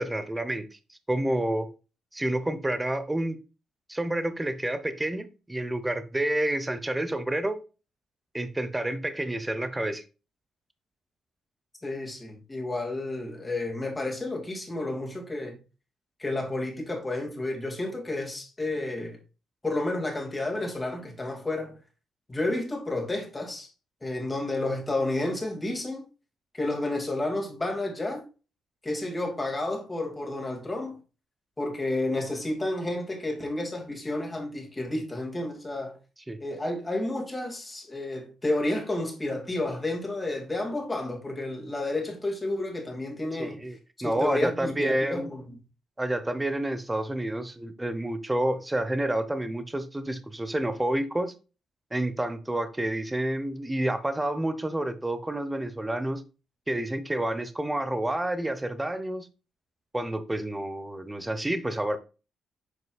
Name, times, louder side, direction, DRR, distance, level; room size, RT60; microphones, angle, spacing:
voice 1, 0.0-1.7 2.1-3.4 3.9-7.6 8.3-10.0 36.3-36.4 43.4-45.3 46.0-51.3 51.9-56.2 56.7-59.3 59.9-62.0, right 1 dB, 10° right, 0.8 m, -29 dB
voice 2, 11.8-15.6 16.2-19.2 19.6-21.8 22.3-23.7 24.0-26.0 26.5-28.2 28.8-31.0 31.6-36.0 36.4-43.6 44.0-45.5, left 2 dB, 20° left, 2.2 m, -31 dB
7.9 x 5.2 x 2.3 m
cardioid pair, 90°, 0 cm